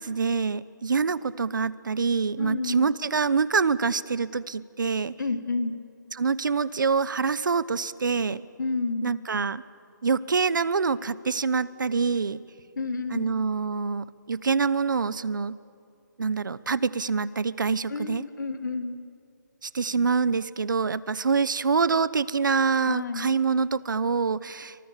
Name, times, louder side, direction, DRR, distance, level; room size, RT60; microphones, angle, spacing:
voice 1, 0.0-5.1 6.1-8.4 9.0-9.6 10.0-12.4 13.1-15.6 16.2-18.2 19.6-24.8, right 5 dB, 75° right, 18 dB, 1.0 m, -25 dB
voice 2, 2.4-2.9 5.2-5.8 8.6-9.1 12.8-13.2 17.9-19.0 22.9-23.3, left 3 dB, 65° left, 9 dB, 1.9 m, -30 dB
29.5 x 25.0 x 7.5 m, 2.4 s
hypercardioid pair, 165°, 11 cm